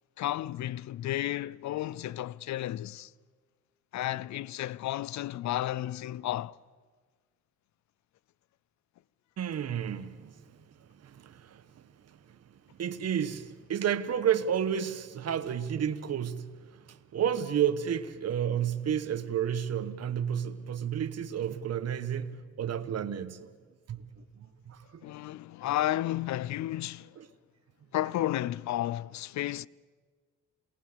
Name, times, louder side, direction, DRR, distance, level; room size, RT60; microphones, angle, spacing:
voice 1, 0.2-3.1 3.9-6.6 25.0-27.2 27.9-29.7, left 14 dB, 65° left, 0.6 m, -32 dB
voice 2, 9.4-10.3 11.0-11.6 12.8-16.5 16.9-22.3 22.6-23.5 23.9-24.0 24.7-25.0, right 9 dB, 55° right, 1.4 m, -31 dB
28.0 x 18.5 x 6.8 m
cardioid pair, 90°, 30 cm